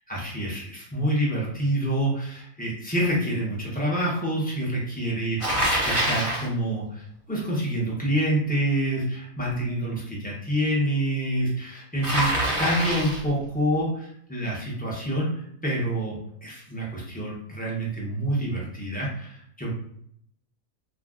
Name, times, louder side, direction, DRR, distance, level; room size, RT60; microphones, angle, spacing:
voice 1, 0.1-12.3 12.6-19.7, right 1 dB, 10° left, -5 dB, 0.4 m, -27 dB
Bicycle, 5.4-6.5 12.0-13.3, right 1 dB, 30° right, 0.6 m, -25 dB
2.5 x 2.2 x 3.6 m, 0.69 s
omnidirectional pair, 1.5 m